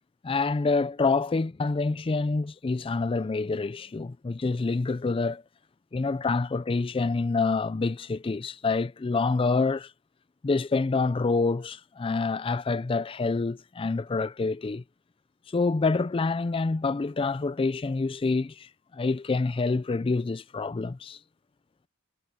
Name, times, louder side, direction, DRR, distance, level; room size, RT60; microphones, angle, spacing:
voice 1, 0.2-5.4 5.9-9.9 10.4-14.8 15.5-21.2, left 3 dB, 25° left, 0.4 m, -27 dB
head